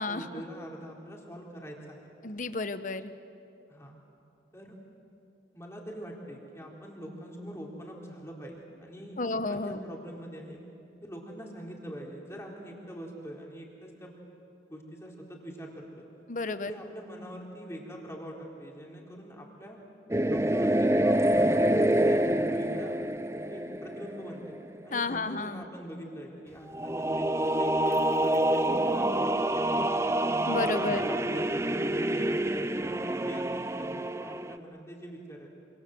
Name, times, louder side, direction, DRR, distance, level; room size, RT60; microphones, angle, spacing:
voice 1, 0.1-2.1 3.7-4.0 4.5-4.7 5.5-9.2 9.5-10.6 11.0-14.2 14.7-16.0 16.5-19.8 20.2-22.2 22.5-23.0 23.5-24.6 24.8-30.1 30.6-35.5, equal, 15° left, -1 dB, 4.0 m, -43 dB
voice 2, 2.2-3.1 9.2-9.8 16.3-16.7 24.9-25.6 30.5-31.1, left 3 dB, 45° left, 11 dB, 1.0 m, -31 dB
sound 1, 20.1-24.7 26.7-34.6, right 1 dB, 15° right, 0.6 m, -27 dB
27.5 x 27.0 x 7.8 m, 2.6 s
head